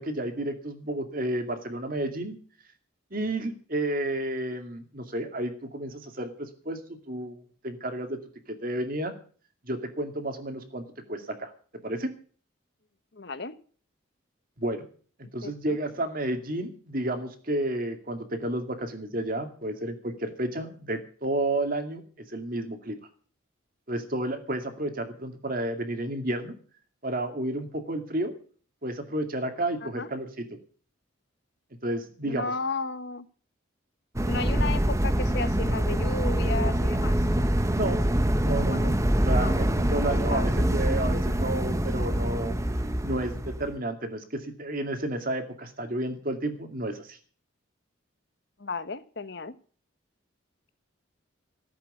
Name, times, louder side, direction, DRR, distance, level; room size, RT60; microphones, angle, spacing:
voice 1, 0.0-2.4 3.1-8.2 8.5-9.1 9.7-10.8 11.1-11.5 11.8-12.1 14.6-14.8 15.3-22.0 22.3-23.0 23.9-26.6 27.0-28.3 28.8-30.5 31.8-32.4 37.7-38.0 38.4-42.6 43.0-47.2, right 1 dB, 45° right, 6 dB, 2.3 m, -31 dB
voice 2, 13.1-13.5 15.4-15.8 29.8-30.1 32.2-33.2 34.3-37.2 38.6-38.8 39.4-39.6 39.9-40.7 48.6-49.5, left 3 dB, 55° left, 13 dB, 1.1 m, -34 dB
sound 1, 34.2-43.7, right 1 dB, 15° right, 0.8 m, -25 dB
15.0 x 8.0 x 8.2 m, 0.43 s
head